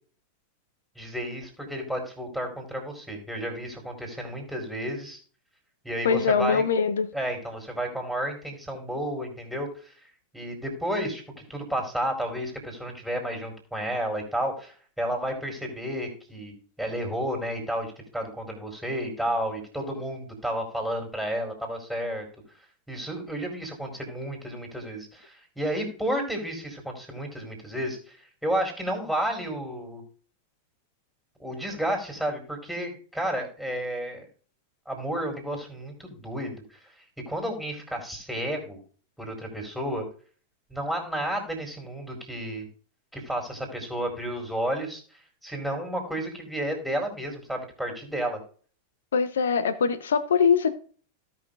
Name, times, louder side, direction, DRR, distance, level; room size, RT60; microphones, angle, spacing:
voice 1, 1.0-5.2 5.8-6.6 7.1-9.9 10.3-11.2 11.5-22.3 22.9-30.0 31.4-34.3 34.9-38.8 39.2-40.1 40.7-42.7 43.1-45.0 45.4-48.4, equal, ahead, 4.1 m, -32 dB
voice 2, 6.0-7.1 49.1-50.7, left 6 dB, 65° left, 1.0 m, -22 dB
17.5 x 6.0 x 2.6 m
figure-of-eight pair, 90°, 0 cm